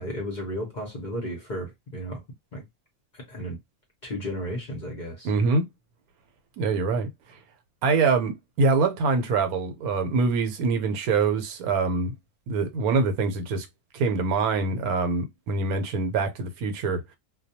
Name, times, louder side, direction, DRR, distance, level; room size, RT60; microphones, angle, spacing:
voice 1, 0.0-2.2 2.5-2.6 3.1-3.6 4.0-5.3, equal, 45° left, 0.6 m, -33 dB
voice 2, 5.2-5.6 6.6-7.1 7.8-12.1 12.5-13.7 13.9-17.0, right 4 dB, 85° right, 1.1 m, -24 dB
2.2 x 2.2 x 2.7 m
omnidirectional pair, 1.5 m